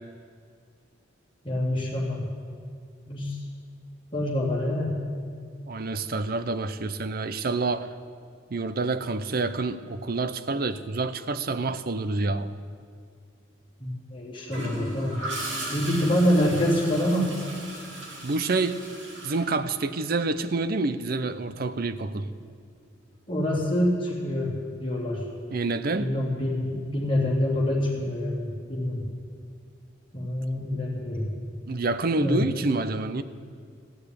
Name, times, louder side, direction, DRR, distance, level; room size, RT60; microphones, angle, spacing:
voice 1, 1.4-2.2 3.1-3.4 4.1-5.0 13.8-15.2 15.7-17.3 23.3-25.2 25.9-29.0 30.1-31.3 32.2-32.4, left 1 dB, 25° left, -4 dB, 3.2 m, -26 dB
voice 2, 5.7-7.9 8.5-12.5 18.2-18.8 19.2-22.3 25.5-26.1 31.7-33.2, right 3 dB, 50° right, 12 dB, 0.6 m, -27 dB
Gurgling / Toilet flush, 14.5-20.2 22.2-22.5, right 1 dB, 65° right, 2.9 m, -37 dB
15.5 x 6.8 x 9.9 m, 2.2 s
head